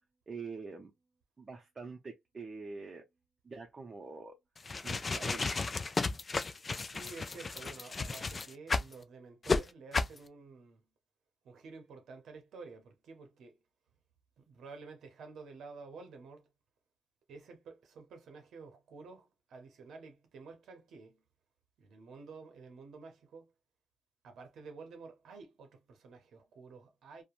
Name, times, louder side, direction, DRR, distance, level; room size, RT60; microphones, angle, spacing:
voice 1, 0.3-0.9 1.4-3.0 3.4-4.4 4.8-5.7, right 4 dB, 30° right, 0.5 m, -45 dB
sound 1, 4.6-8.9 9.4-9.6 9.9-10.2, left 4 dB, 30° left, 0.3 m, -33 dB
voice 2, 6.8-10.8 11.4-13.5 14.4-16.5 17.3-21.2 21.8-23.5 24.2-27.2, right 4 dB, 70° right, 0.7 m, -51 dB
2.9 x 2.1 x 2.4 m
cardioid pair, 90°, 0 cm